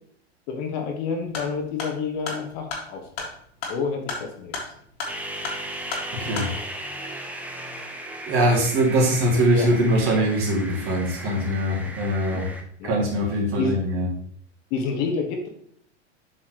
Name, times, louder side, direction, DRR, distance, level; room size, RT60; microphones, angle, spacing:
voice 1, 0.5-3.3 3.7-4.7 9.5-9.7 12.3-13.0 13.6-13.8 14.7-15.5, left 5 dB, 45° left, 3 dB, 1.6 m, -29 dB
sound 1, 1.2-6.5, left 3 dB, 65° left, 2.5 m, -35 dB
sound 2, 5.1-12.6, right 1 dB, 5° right, 0.9 m, -36 dB
voice 2, 6.1-6.5 6.9-7.3 8.2-12.5 12.8-14.1, right 1 dB, 40° right, -2 dB, 2.9 m, -22 dB
7.9 x 6.1 x 3.2 m, 0.65 s
figure-of-eight pair, 90°, 33 cm